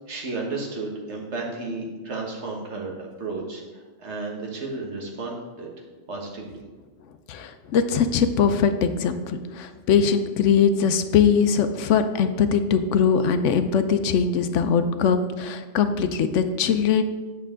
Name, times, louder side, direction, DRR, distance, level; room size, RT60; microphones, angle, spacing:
voice 1, 0.1-5.7 6.1-6.6, right 3 dB, 65° right, 0 dB, 1.6 m, -33 dB
voice 2, 7.3-17.0, left 6 dB, 75° left, 9 dB, 0.9 m, -21 dB
8.8 x 6.7 x 3.7 m, 1.3 s
omnidirectional pair, 1.3 m